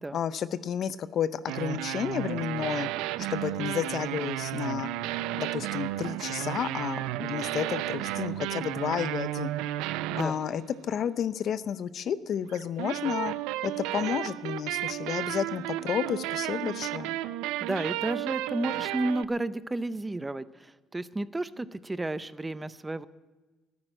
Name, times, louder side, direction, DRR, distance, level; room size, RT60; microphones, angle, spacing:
voice 1, 0.1-2.9 3.3-4.9 5.4-9.5 10.2-10.6 10.9-13.3 13.6-17.1, left 8 dB, 55° left, 15 dB, 0.6 m, -31 dB
sound 1, 1.5-11.0 12.5-19.3, right 15 dB, 85° right, 0.4 m, -33 dB
voice 2, 17.6-23.0, right 2 dB, 15° right, 15 dB, 0.6 m, -32 dB
12.0 x 9.5 x 8.9 m, 1.2 s
supercardioid pair, 80°, 0 cm